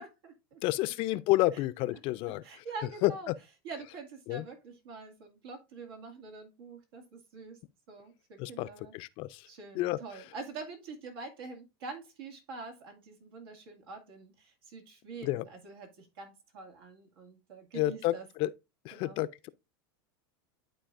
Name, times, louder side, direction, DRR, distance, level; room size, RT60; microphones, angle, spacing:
voice 1, 0.0-0.6 2.4-3.3 3.6-7.6 7.9-8.9 9.5-18.2 18.9-19.2, right 4 dB, 80° right, 2.1 m, -45 dB
voice 2, 0.6-2.6 3.0-3.3 4.3-4.5 8.4-9.5 9.7-10.2 15.2-15.4 17.7-18.5 18.8-19.5, left 17 dB, 50° left, 0.5 m, -30 dB
11.5 x 4.1 x 2.5 m
supercardioid pair, 125°, 12 cm